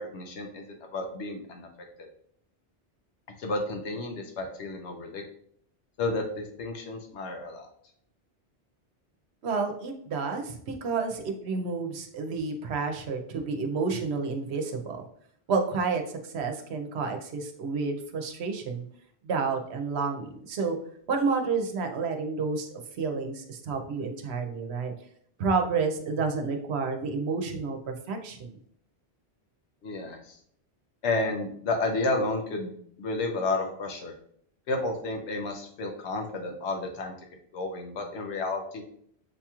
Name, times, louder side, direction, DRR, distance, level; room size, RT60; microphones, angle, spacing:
voice 1, 0.0-1.7 2.0-2.1 3.4-5.2 6.0-7.7 29.8-30.4 31.0-32.7 33.0-34.1 34.7-37.1 37.5-38.8, left 2 dB, 85° left, 3 dB, 1.0 m, -31 dB
voice 2, 9.4-15.0 15.5-18.8 19.2-20.8 21.1-22.7 22.9-24.9 25.4-28.5, right 4 dB, 75° right, 4 dB, 0.9 m, -30 dB
7.1 x 2.9 x 2.3 m, 0.66 s
omnidirectional pair, 1.1 m